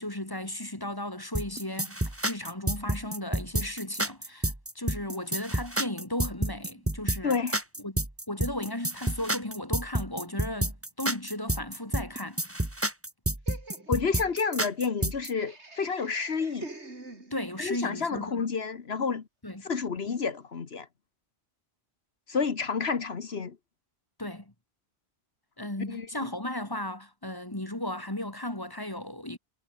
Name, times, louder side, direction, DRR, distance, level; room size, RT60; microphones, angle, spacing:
voice 1, 0.0-7.4 7.8-8.0 8.3-12.4 17.3-18.5 19.4-19.7 24.2-24.5 25.6-29.4, left 1 dB, 20° left, 2.5 m, -35 dB
sound 1, 1.3-15.3, right 1 dB, 10° right, 1.8 m, -29 dB
voice 2, 7.2-7.6 13.9-16.7 17.6-19.2 19.6-20.9 22.3-23.6 25.9-26.3, left 5 dB, 70° left, 1.6 m, -30 dB
Laughter, 13.5-17.7, right 2 dB, 85° right, 4.5 m, -46 dB
omnidirectional pair, 1.1 m